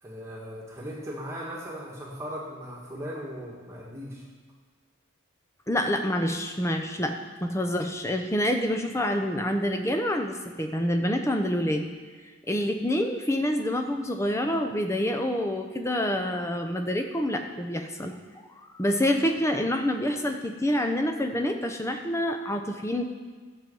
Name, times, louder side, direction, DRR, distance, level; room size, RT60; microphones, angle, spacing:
voice 1, 0.0-4.2, equal, 15° right, -4 dB, 1.7 m, -38 dB
voice 2, 5.7-11.9 12.5-18.2 18.8-23.0, left 1 dB, 15° left, 5 dB, 0.8 m, -27 dB
13.0 x 7.5 x 5.5 m, 1.4 s
head